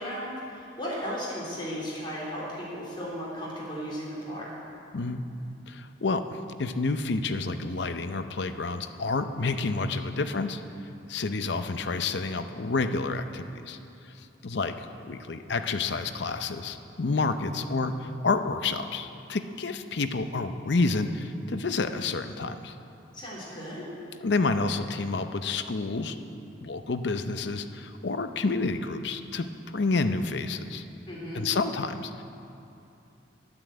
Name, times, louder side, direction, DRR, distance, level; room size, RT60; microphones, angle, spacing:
voice 1, 0.0-4.5 23.1-23.9 31.0-31.5, equal, 25° left, -7 dB, 3.5 m, -35 dB
voice 2, 4.9-5.2 5.7-10.6 11.1-13.8 14.2-22.7 24.2-26.2 26.6-29.5 29.7-30.8 31.3-32.2, left 3 dB, 65° left, 9 dB, 0.6 m, -29 dB
10.5 x 9.6 x 7.9 m, 2.8 s
head